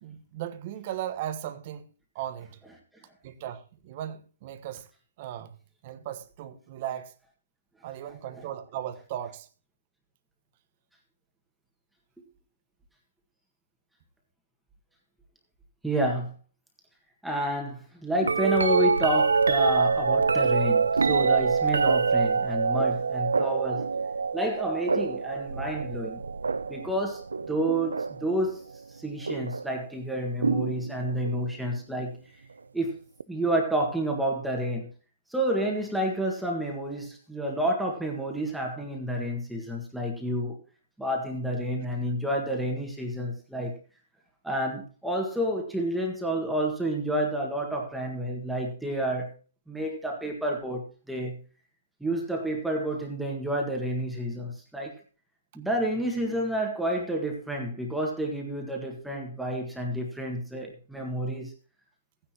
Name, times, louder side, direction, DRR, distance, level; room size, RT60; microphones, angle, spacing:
voice 1, 0.0-1.9 2.1-2.6 3.2-4.9 5.2-5.6 5.8-7.1 7.8-9.5, right 11 dB, 40° right, 1.2 m, -37 dB
voice 2, 15.8-16.3 17.2-23.9 24.3-26.2 26.7-27.2 27.5-28.6 28.9-32.2 32.7-32.9 33.3-34.9 35.3-40.6 41.0-43.8 44.4-49.3 49.7-51.4 52.0-54.9 55.5-61.5, right 1 dB, ahead, 1.7 m, -29 dB
sound 1, 18.2-28.3 29.3-29.7 30.4-31.4 33.2-33.3, right 5 dB, 90° right, 0.4 m, -25 dB
14.5 x 10.0 x 3.0 m
hypercardioid pair, 140°, 0 cm